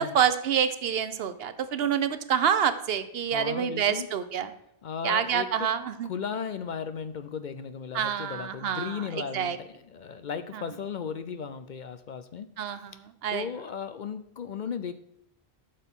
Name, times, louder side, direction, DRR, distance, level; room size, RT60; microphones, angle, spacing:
voice 1, 0.0-4.5 5.0-6.1 7.9-9.6 12.6-13.5, right 8 dB, 75° right, 12 dB, 0.9 m, -27 dB
voice 2, 3.3-4.1 4.8-5.7 6.0-12.5 13.3-15.0, left 6 dB, 55° left, 11 dB, 0.6 m, -36 dB
12.0 x 6.5 x 3.6 m, 0.79 s
omnidirectional pair, 1.0 m